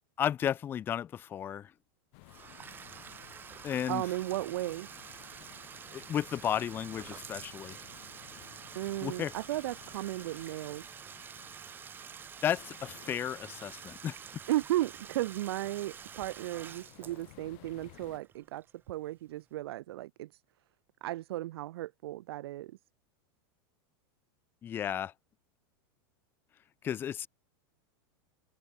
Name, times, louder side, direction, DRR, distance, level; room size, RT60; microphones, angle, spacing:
voice 1, 0.2-1.7 3.6-4.0 5.9-7.8 9.0-9.3 12.4-14.2 24.6-25.1 26.8-27.3, left 9 dB, 15° left, 0.5 m, -33 dB
sound 1, 2.1-18.2, left 40 dB or more, 45° left, 5.3 m, -56 dB
Bathtub (filling or washing), 2.2-19.0, right 8 dB, 15° right, 0.8 m, -48 dB
voice 2, 3.9-4.9 8.8-10.9 14.5-20.3 21.0-22.7, right 15 dB, 85° right, 0.4 m, -35 dB
supercardioid pair, 160°, 13 cm